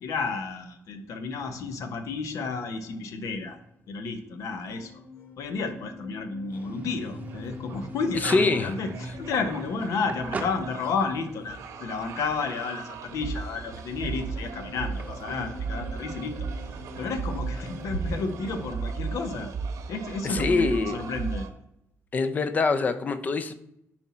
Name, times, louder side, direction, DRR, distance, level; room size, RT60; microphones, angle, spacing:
voice 1, 0.0-3.6 3.9-5.0 5.4-19.5 19.9-21.5, left 4 dB, 75° left, 8 dB, 1.0 m, -32 dB
sound 1, 1.4-20.2, left 1 dB, 50° left, 1.8 m, -45 dB
sound 2, 6.5-18.8, right 4 dB, 25° right, 0.8 m, -45 dB
sound 3, 7.2-21.5, right 5 dB, 75° right, 0.9 m, -36 dB
voice 2, 8.2-8.7 20.2-21.0 22.1-23.5, left 3 dB, 30° left, 10 dB, 0.5 m, -24 dB
9.8 x 4.4 x 4.2 m, 0.80 s
cardioid pair, 165°, 6 cm